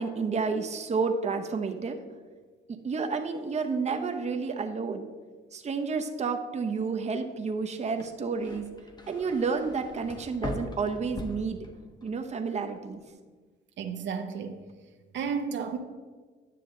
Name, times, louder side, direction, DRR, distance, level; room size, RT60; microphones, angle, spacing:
voice 1, 0.0-2.0 2.7-5.1 5.5-8.7 9.1-11.6 12.0-13.0, right 4 dB, 35° right, 5 dB, 0.8 m, -30 dB
sound 1, 7.9-12.1 12.5-13.0, left 1 dB, 20° left, 1.0 m, -41 dB
voice 2, 13.8-14.6 15.1-15.8, right 6 dB, 65° right, 5 dB, 0.8 m, -32 dB
10.0 x 6.7 x 3.8 m, 1.4 s
cardioid pair, 90°, 20 cm